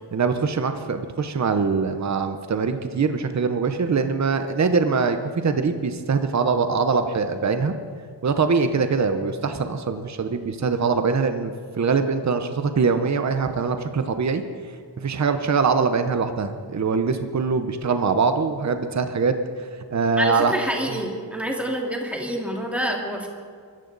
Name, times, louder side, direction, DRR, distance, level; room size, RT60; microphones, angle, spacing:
voice 1, 0.1-7.7 8.2-14.4 15.0-19.3 19.9-20.5 20.9-21.0, right 5 dB, 40° right, 8 dB, 0.9 m, -23 dB
voice 2, 20.2-23.3, right 1 dB, 5° right, 0 dB, 2.3 m, -27 dB
24.0 x 14.5 x 4.0 m, 2.1 s
wide cardioid pair, 170°, 43 cm